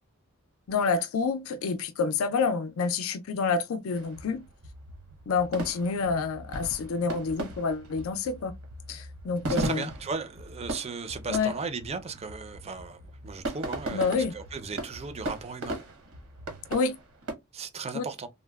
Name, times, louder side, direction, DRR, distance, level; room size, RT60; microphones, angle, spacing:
voice 1, 0.7-4.4 5.3-8.5 8.9-9.9 11.3-11.5 13.9-14.3 16.7-16.9 17.9-18.0, left 4 dB, 70° left, 0.4 m, -28 dB
sound 1, 3.9-17.3, right 1 dB, 75° right, 1.0 m, -38 dB
voice 2, 9.5-15.8 17.5-18.3, right 4 dB, 30° right, 0.4 m, -36 dB
3.7 x 2.0 x 2.3 m
head